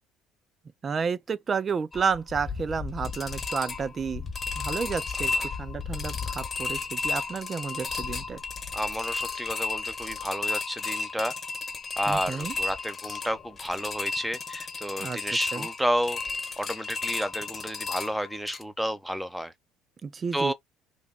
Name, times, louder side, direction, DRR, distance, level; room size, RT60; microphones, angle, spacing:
voice 1, 0.8-4.3 4.6-8.4 12.1-12.5 15.0-15.2 15.5-15.7 20.0-20.5, right 5 dB, 35° right, 0.4 m, -31 dB
sound 1, 1.9-18.6, left 4 dB, 30° left, 1.0 m, -33 dB
voice 2, 8.7-11.3 12.0-16.2 16.6-19.5 20.3-20.5, equal, 5° right, 0.8 m, -31 dB
3.3 x 2.3 x 3.6 m
hypercardioid pair, 70°, 0 cm